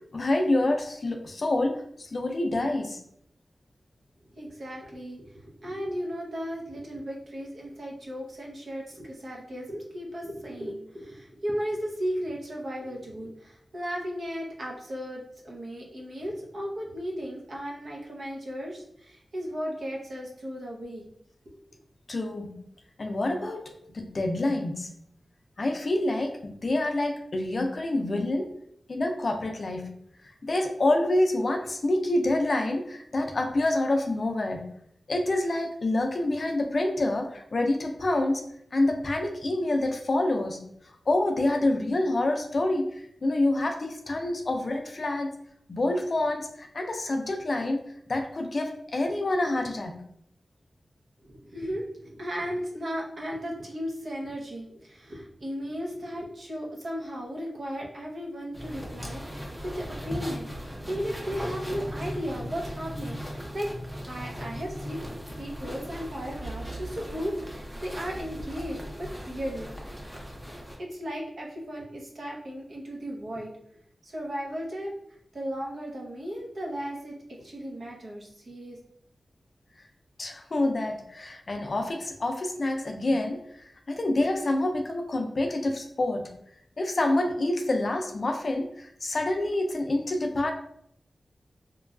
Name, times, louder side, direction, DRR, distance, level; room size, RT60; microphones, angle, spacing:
voice 1, 0.1-3.0 22.1-22.6 23.0-24.9 25.6-28.5 28.9-29.9 30.4-34.7 35.1-38.4 38.7-40.6 41.1-45.3 45.7-47.8 48.1-50.0 80.2-86.3 86.8-90.5, left 2 dB, 45° left, 4 dB, 0.4 m, -27 dB
voice 2, 4.4-21.0 51.2-63.7 64.1-65.0 65.4-70.0 70.8-73.5 74.0-74.9 75.3-78.8, equal, 60° right, -2 dB, 0.7 m, -35 dB
sound 1, 58.5-70.8, equal, 5° right, 0.5 m, -38 dB
3.0 x 2.2 x 2.4 m, 0.72 s
wide cardioid pair, 115°, 0 cm